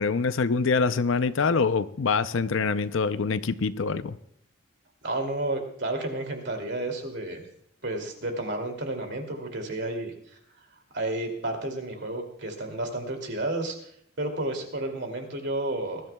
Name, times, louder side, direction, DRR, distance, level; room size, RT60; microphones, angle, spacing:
voice 1, 0.0-4.2, left 4 dB, 65° left, 13 dB, 0.6 m, -25 dB
voice 2, 5.0-7.4 7.8-10.1 10.9-13.8 14.2-16.1, right 2 dB, 50° right, 4 dB, 2.7 m, -31 dB
22.0 x 13.5 x 2.3 m, 0.70 s
head